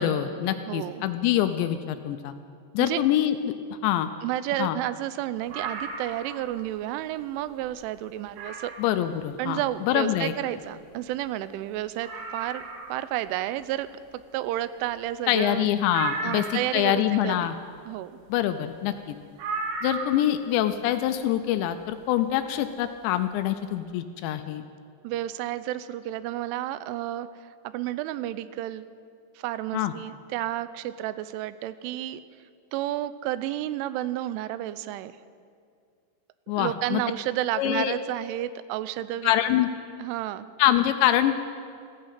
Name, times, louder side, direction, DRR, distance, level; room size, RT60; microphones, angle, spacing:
voice 1, 0.0-2.3 2.7-3.4 3.8-4.1 4.6-4.8 8.8-10.3 15.3-16.4 16.7-17.5 18.3-19.2 19.8-24.6 29.7-29.9 36.5-37.0 37.6-38.0 39.2-39.7 40.6-41.4, left 12 dB, 80° left, 9 dB, 2.7 m, -25 dB
voice 2, 0.7-1.0 2.8-3.0 4.2-8.7 9.4-12.6 12.9-13.9 14.3-15.7 16.2-17.5 17.9-18.1 25.0-27.3 27.6-28.8 29.4-32.2 32.7-35.1 36.6-39.3 40.0-40.5, right 13 dB, 85° right, 14 dB, 3.0 m, -31 dB
sound 1, 5.5-6.5 7.0-7.1 7.6-7.7 8.3-8.9 10.7-10.8 11.0-11.1 11.5-11.6 12.0-13.1 15.9-16.8 19.4-20.4 21.7-21.8, right 4 dB, 65° right, 3.4 m, -34 dB
16.0 x 15.0 x 5.8 m, 2.2 s
omnidirectional pair, 5.5 m